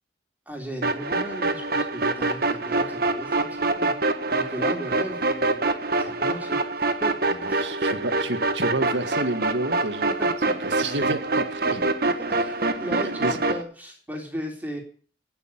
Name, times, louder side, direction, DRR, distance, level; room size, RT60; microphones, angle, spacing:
voice 1, 0.5-4.0 4.3-5.7 6.0-7.1 7.5-7.7 10.2-10.5 10.8-11.0 11.7-11.8 12.4-14.8, equal, 10° right, 1 dB, 3.7 m, -36 dB
sound 1, 0.8-13.6, right 2 dB, 55° right, 1.5 m, -25 dB
voice 2, 7.6-10.2 10.6-11.8 13.0-13.4, right 2 dB, 80° right, 9 dB, 1.9 m, -29 dB
18.5 x 6.9 x 8.8 m, 0.42 s
head